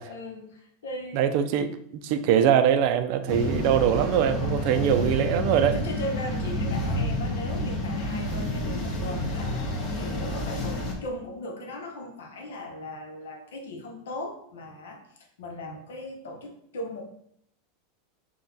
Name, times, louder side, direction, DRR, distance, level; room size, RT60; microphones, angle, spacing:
voice 1, 0.0-1.3 2.1-2.2 4.6-5.1 5.7-9.5 9.9-17.0, left 1 dB, 90° left, 4 dB, 0.8 m, -38 dB
voice 2, 1.1-5.8, right 9 dB, 60° right, 9 dB, 0.4 m, -23 dB
sound 1, 3.3-10.9, left 1 dB, 45° left, 1.0 m, -29 dB
3.9 x 2.2 x 4.0 m, 0.70 s
supercardioid pair, 120°, 0 cm